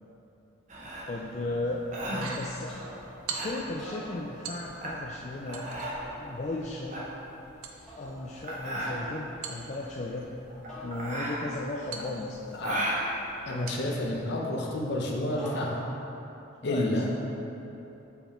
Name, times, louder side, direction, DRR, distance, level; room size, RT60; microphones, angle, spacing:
sound 1, 0.7-14.2, right 1 dB, 35° right, 0.9 m, -36 dB
voice 1, 1.1-2.8 3.3-5.7 6.2-7.1 8.0-10.3 10.8-12.9 16.6-16.9, left 2 dB, 35° left, -3 dB, 0.3 m, -35 dB
sound 2, 2.1-2.6 3.3-3.8 4.4-5.0 5.5-6.1 7.6-8.7 9.4-10.3 11.9-12.7 13.7-14.1 14.5-14.6, right 6 dB, 85° right, 0.6 m, -41 dB
sound 3, 2.7-3.3 3.7-4.8 5.8-6.7 7.9-8.4 8.9-9.4 10.7-11.5 12.8-13.8 15.4-16.1, left 1 dB, 5° left, 1.3 m, -46 dB
voice 2, 13.4-15.9 16.6-17.1, left 1 dB, 55° left, -1 dB, 0.8 m, -30 dB
5.5 x 4.6 x 4.3 m, 2.9 s
head